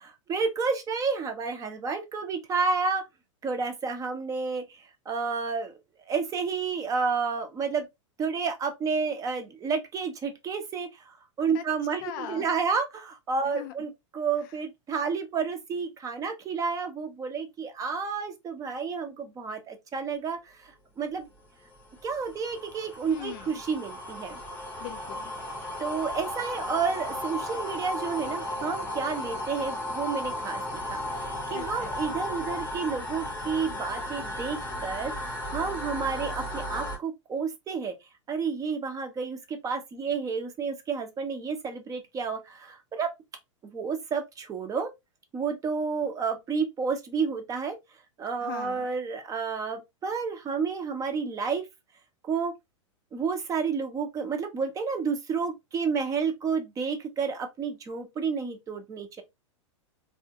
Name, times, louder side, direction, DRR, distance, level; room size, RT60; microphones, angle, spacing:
voice 1, 0.0-3.0 3.4-5.8 6.1-7.9 8.2-21.3 22.0-24.4 25.8-37.9 38.3-43.1 43.6-44.9 45.3-47.8 48.2-51.7 52.2-52.5 53.1-59.2, right 5 dB, 20° right, 0.6 m, -30 dB
voice 2, 12.0-12.5 13.5-13.7 23.1-23.5 24.8-25.3 31.5-32.2 48.4-48.9, left 12 dB, 40° left, 0.4 m, -40 dB
sound 1, 21.4-37.0, left 1 dB, 10° left, 0.8 m, -35 dB
3.4 x 2.2 x 2.7 m
figure-of-eight pair, 95°, 16 cm